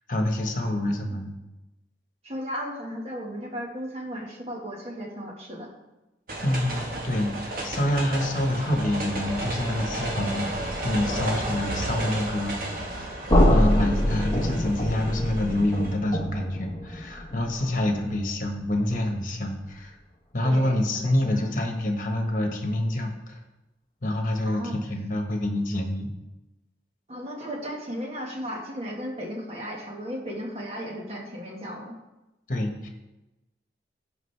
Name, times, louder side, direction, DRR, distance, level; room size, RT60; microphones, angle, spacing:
voice 1, 0.1-1.3 6.4-7.4 7.6-13.2 13.5-20.0 20.3-23.4 24.0-26.1 32.5-32.9, left 1 dB, 45° left, 3 dB, 1.3 m, -27 dB
voice 2, 0.6-1.2 2.2-5.7 17.6-18.0 20.4-21.5 24.4-24.8 27.1-31.9, equal, 35° right, 0 dB, 1.6 m, -36 dB
sound 1, 6.3-15.9, right 1 dB, 50° right, 1.5 m, -33 dB
sound 2, 13.3-19.2, left 1 dB, 25° left, 1.0 m, -25 dB
15.5 x 5.2 x 3.4 m, 1.0 s
head